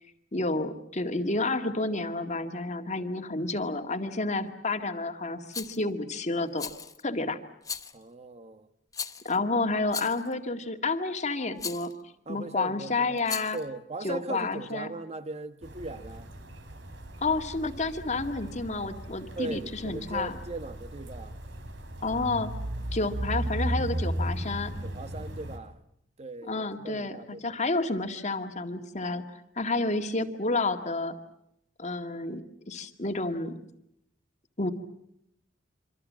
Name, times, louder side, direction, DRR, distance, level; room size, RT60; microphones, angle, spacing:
voice 1, 0.3-6.7 7.0-7.4 9.2-11.9 12.3-13.6 14.0-14.9 17.2-20.4 22.0-22.5 22.9-24.7 26.5-31.2 31.8-33.6 34.6-34.7, left 3 dB, 40° left, 2.0 m, -30 dB
Rattle, 5.5-5.8 6.6-7.0 7.6-8.0 8.9-9.4 9.9-10.3 11.6-11.9 13.2-13.6, left 6 dB, 20° left, 1.0 m, -37 dB
voice 2, 7.9-8.7 12.2-13.2 13.5-16.3 19.4-21.4 24.8-25.8 26.2-27.6, right 2 dB, 35° right, 1.4 m, -39 dB
sound 1, 15.6-25.6, right 1 dB, 70° right, 3.5 m, -36 dB
27.0 x 25.5 x 7.5 m
head